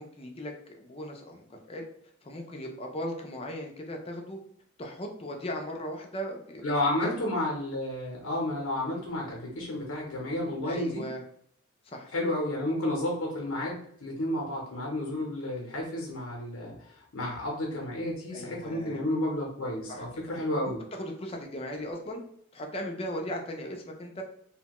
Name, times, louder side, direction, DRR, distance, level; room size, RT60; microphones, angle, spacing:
voice 1, 0.0-1.8 2.2-4.4 4.8-6.6 7.0-7.2 10.6-11.2 11.8-12.1 18.3-19.0 19.9-20.0 20.9-22.2 22.5-24.2, equal, 25° left, 2 dB, 0.4 m, -37 dB
voice 2, 6.6-11.0 12.1-20.8, left 1 dB, 90° left, -1 dB, 0.7 m, -31 dB
2.8 x 2.1 x 2.9 m, 0.64 s
head